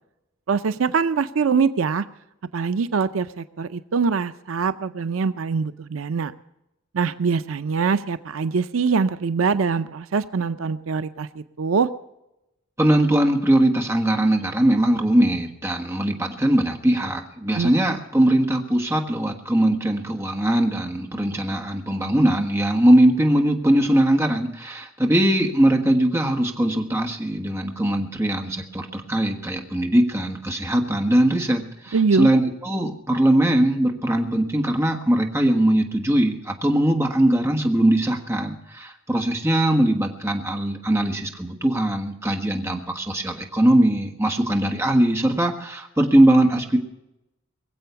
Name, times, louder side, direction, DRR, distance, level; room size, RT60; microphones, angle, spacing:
voice 1, 0.5-2.0 2.5-6.3 6.9-11.9 17.5-17.7 31.9-32.3, right 5 dB, 80° right, 13 dB, 0.5 m, -23 dB
voice 2, 12.8-46.8, right 1 dB, 15° right, 3 dB, 1.6 m, -20 dB
22.0 x 7.7 x 6.8 m, 0.90 s
head